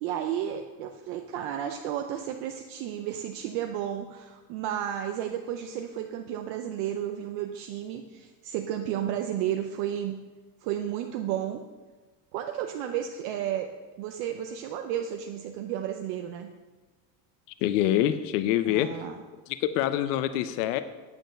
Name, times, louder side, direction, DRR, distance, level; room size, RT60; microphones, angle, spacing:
voice 1, 0.0-10.2 10.6-11.6 12.3-16.5 18.6-19.2, right 10 dB, 40° right, 5 dB, 0.5 m, -32 dB
voice 2, 17.6-18.9 19.5-20.8, left 12 dB, 75° left, 11 dB, 0.8 m, -25 dB
9.2 x 8.6 x 6.5 m, 1.3 s
cardioid pair, 180°, 47 cm